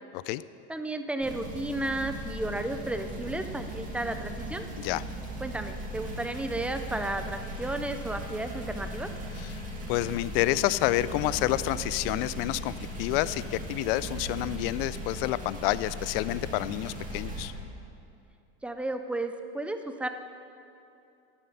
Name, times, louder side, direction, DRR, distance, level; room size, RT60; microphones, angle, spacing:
voice 1, 0.7-4.6 5.4-9.1 18.6-20.1, right 2 dB, 5° right, 7 dB, 0.3 m, -33 dB
sound 1, 1.2-17.5, right 1 dB, 25° right, 2.4 m, -38 dB
voice 2, 9.9-12.7 13.0-17.5, left 16 dB, 60° left, 17 dB, 0.4 m, -29 dB
12.5 x 11.0 x 5.7 m, 2.7 s
supercardioid pair, 145°, 33 cm